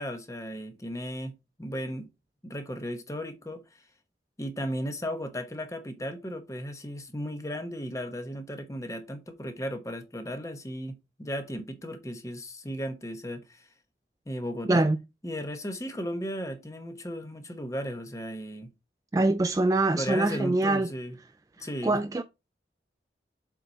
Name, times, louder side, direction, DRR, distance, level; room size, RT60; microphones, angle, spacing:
voice 1, 0.0-1.3 1.6-2.1 2.4-3.8 4.4-13.7 14.3-14.9 15.2-18.7 20.0-21.1 21.6-22.0, equal, 20° left, 1.1 m, -35 dB
voice 2, 19.1-20.9 21.6-22.2, right 2 dB, 20° right, 0.3 m, -24 dB
7.5 x 4.2 x 4.1 m
head